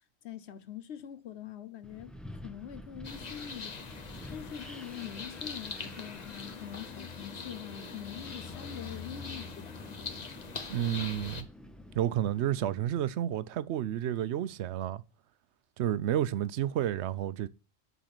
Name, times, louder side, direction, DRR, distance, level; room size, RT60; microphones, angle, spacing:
voice 1, 0.2-2.1 2.4-3.8 4.3-10.3, left 9 dB, 75° left, 1.0 m, -44 dB
Wind, 1.8-12.8, left 1 dB, ahead, 0.6 m, -49 dB
sound 1, 3.0-11.4, left 5 dB, 40° left, 0.9 m, -43 dB
voice 2, 10.7-11.5 11.9-15.0 15.8-17.5, right 11 dB, 80° right, 0.9 m, -30 dB
8.7 x 4.1 x 6.0 m
omnidirectional pair, 1.1 m